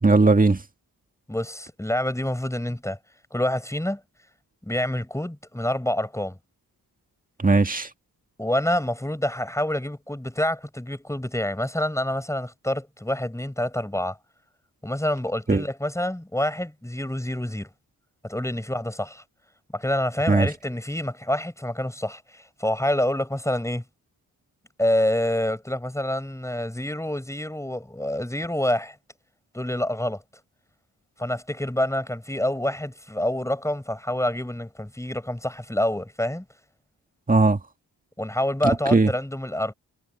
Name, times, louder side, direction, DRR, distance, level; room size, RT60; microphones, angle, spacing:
voice 1, 0.0-0.6 7.4-7.9 15.5-15.6 20.3-20.5 37.3-37.6 38.9-39.1, right 3 dB, 20° right, 1.8 m, -18 dB
voice 2, 1.3-3.0 3.3-4.0 4.6-6.4 8.4-14.2 14.8-17.7 18.2-19.2 19.7-23.8 24.8-29.0 29.5-30.2 31.2-36.5 38.2-39.7, left 1 dB, 10° left, 6.4 m, -27 dB
cardioid pair, 70°, 37 cm